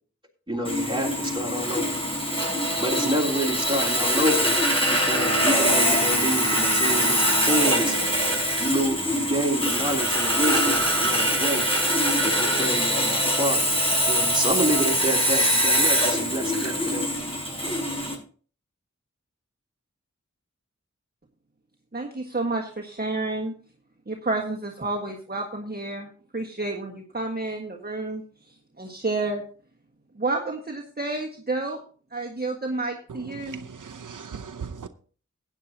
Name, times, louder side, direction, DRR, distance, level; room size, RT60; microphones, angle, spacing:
voice 1, 0.5-2.0 2.8-4.5 4.8-8.0 8.6-11.7 12.2-13.7 14.1-17.1, right 1 dB, 15° right, 3.3 m, -28 dB
Sawing, 0.6-18.1, equal, 20° left, 5.8 m, -23 dB
sound 1, 5.1-8.5, right 2 dB, 80° left, 2.2 m, -33 dB
voice 2, 21.9-23.5 24.1-28.2 28.8-29.4 30.2-31.8 32.1-33.6, right 2 dB, 30° right, 1.6 m, -30 dB
voice 3, 33.1-34.9, right 6 dB, 85° right, 0.7 m, -38 dB
16.0 x 9.3 x 2.9 m
wide cardioid pair, 60°, 30 cm